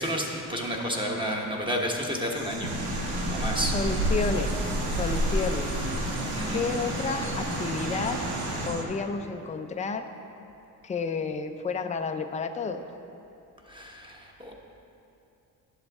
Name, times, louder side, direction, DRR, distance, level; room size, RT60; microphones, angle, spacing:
voice 1, 0.0-2.7 3.3-3.7 6.3-6.6 13.6-14.5, equal, 10° right, -1 dB, 1.2 m, -31 dB
sound 1, 2.3-8.8, right 4 dB, 60° right, 0.9 m, -41 dB
sound 2, 2.6-8.7, right 1 dB, 80° right, 2.0 m, -29 dB
voice 2, 3.7-4.7 4.9-5.8 6.5-8.2 8.7-10.0 10.8-12.9, left 4 dB, 20° left, 7 dB, 0.4 m, -31 dB
11.0 x 7.7 x 3.5 m, 2.7 s
cardioid pair, 100°, 39 cm